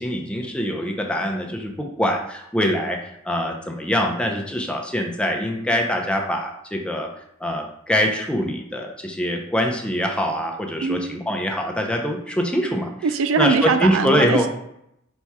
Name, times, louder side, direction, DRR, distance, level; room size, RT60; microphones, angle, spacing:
voice 1, 0.0-7.1 7.4-12.9 13.4-14.5, equal, 5° left, 1 dB, 0.5 m, -24 dB
voice 2, 10.8-11.2 13.0-14.5, right 5 dB, 80° right, 9 dB, 0.4 m, -21 dB
4.1 x 2.3 x 4.6 m, 0.78 s
head